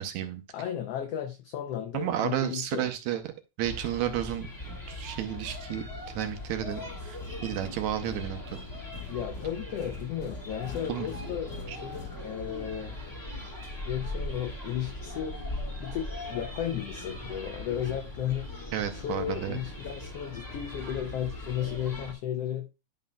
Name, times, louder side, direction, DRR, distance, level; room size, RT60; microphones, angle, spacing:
voice 1, 0.0-0.4 1.9-3.3 3.6-5.8 6.2-8.6 10.9-11.1 11.7-11.8 18.7-19.6, right 11 dB, 75° right, 1.9 m, -32 dB
voice 2, 0.5-2.8 9.1-12.9 13.8-15.4 15.8-18.5 18.9-22.7, left 10 dB, 85° left, 1.3 m, -34 dB
sound 1, 3.6-22.1, left 1 dB, 10° left, 0.9 m, -40 dB
sound 2, 6.8-12.8, left 3 dB, 65° left, 1.0 m, -46 dB
11.0 x 5.5 x 2.3 m
omnidirectional pair, 3.6 m